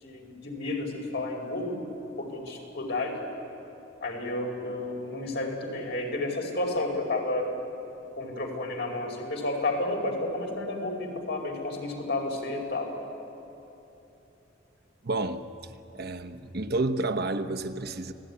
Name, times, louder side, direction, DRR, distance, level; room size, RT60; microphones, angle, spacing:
voice 1, 0.0-1.8 2.2-3.2 4.0-7.5 8.1-12.9, left 2 dB, 65° left, 5.1 m, -31 dB
voice 2, 15.0-15.5 15.9-18.1, right 2 dB, 55° right, 1.0 m, -30 dB
29.0 x 18.0 x 9.8 m
head